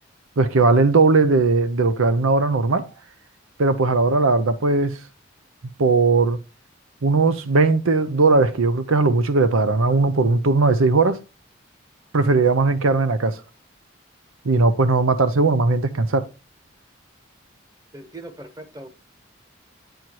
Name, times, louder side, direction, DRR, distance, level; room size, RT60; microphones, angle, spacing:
voice 1, 0.4-2.9 3.6-5.0 5.8-6.4 7.0-11.2 12.1-13.4 14.4-16.3, right 3 dB, 85° right, 0.7 m, -18 dB
voice 2, 17.9-18.9, right 2 dB, 15° right, 1.1 m, -39 dB
9.3 x 4.5 x 4.5 m
head